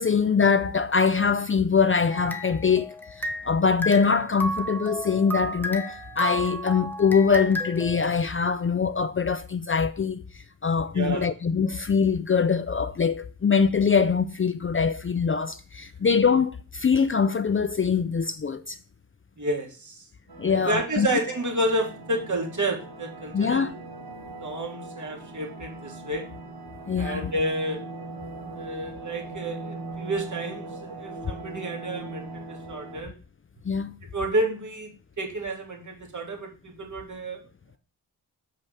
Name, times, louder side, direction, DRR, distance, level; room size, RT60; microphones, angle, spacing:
voice 1, 0.0-10.2 10.6-18.8 20.4-21.1 23.3-23.7 26.9-27.3 33.6-34.0, left 5 dB, 35° left, 0.5 m, -23 dB
sound 1, 2.1-3.6 3.8-8.1, equal, 5° left, 1.1 m, -33 dB
voice 2, 10.9-11.3 19.4-20.0 20.5-23.8 24.3-26.3 27.0-27.8 28.5-33.1 34.1-34.9 35.2-37.4, right 1 dB, 50° right, 2.3 m, -30 dB
sound 2, 20.3-33.0, right 2 dB, 85° right, 1.8 m, -40 dB
7.0 x 5.4 x 6.3 m
wide cardioid pair, 85°, 37 cm